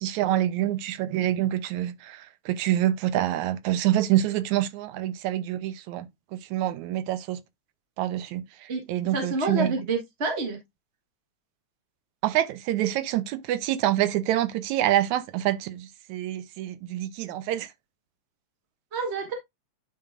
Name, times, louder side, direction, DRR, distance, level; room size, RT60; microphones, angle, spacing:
voice 1, 0.0-6.1 6.3-7.4 8.0-9.7 12.2-17.7, right 13 dB, 80° right, 2.1 m, -26 dB
voice 2, 9.1-10.6 18.9-19.3, right 3 dB, 35° right, 1.1 m, -28 dB
10.0 x 5.9 x 2.5 m
omnidirectional pair, 3.3 m